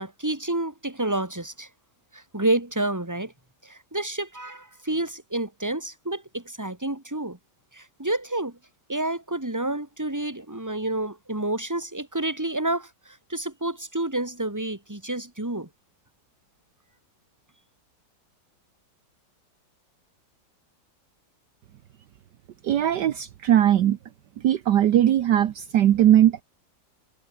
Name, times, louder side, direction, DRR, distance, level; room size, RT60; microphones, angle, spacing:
voice 1, 0.0-1.7 2.1-3.3 3.6-7.4 7.7-8.6 8.9-15.7, right 2 dB, 10° right, 2.9 m, -29 dB
voice 2, 22.6-24.0 24.4-26.4, right 11 dB, 70° right, 1.5 m, -19 dB
omnidirectional pair, 2.0 m